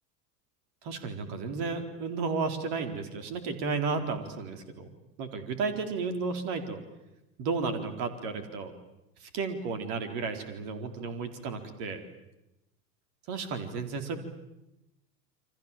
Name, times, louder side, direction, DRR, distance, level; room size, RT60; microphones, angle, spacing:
voice 1, 0.8-4.9 5.2-6.8 7.4-8.7 9.2-12.0 13.3-14.2, right 4 dB, 50° right, 8 dB, 4.2 m, -33 dB
29.0 x 25.5 x 7.5 m, 0.94 s
figure-of-eight pair, 80°, 49 cm